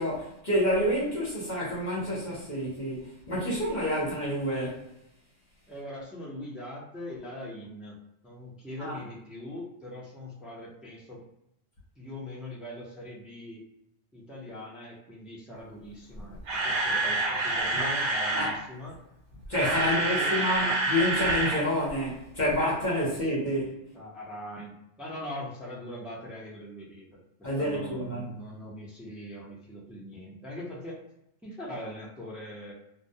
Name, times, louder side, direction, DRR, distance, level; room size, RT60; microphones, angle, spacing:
voice 1, 0.0-4.9 8.8-8.9 18.3-18.5 19.5-23.8 27.4-28.4, equal, 45° left, 0.8 m, -28 dB
voice 2, 5.7-8.0 8.2-11.2 12.0-13.6 14.1-19.0 19.7-20.8 23.9-31.0 31.4-32.7, left 1 dB, ahead, 0.3 m, -41 dB
Camera, 16.2-18.6 19.3-21.6 21.9-22.0 22.5-22.6, right 2 dB, 70° right, 1.0 m, -27 dB
2.2 x 2.1 x 2.7 m
omnidirectional pair, 1.3 m